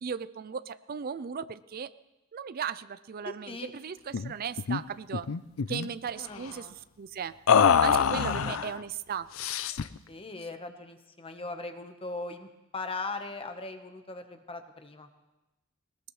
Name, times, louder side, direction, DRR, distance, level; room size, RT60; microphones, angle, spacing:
voice 1, 0.0-1.9 2.3-5.3 5.7-7.3 7.8-9.3, right 7 dB, 45° right, 15 dB, 0.4 m, -36 dB
voice 2, 3.2-3.7 6.2-6.8 8.3-8.5 10.1-15.1, left 3 dB, 25° left, 7 dB, 1.1 m, -39 dB
sound 1, 4.1-4.3 4.6-4.8 5.1-5.9 7.5-8.7 9.4-10.0, left 7 dB, 85° left, 0.5 m, -24 dB
21.0 x 19.5 x 3.2 m, 1.0 s
head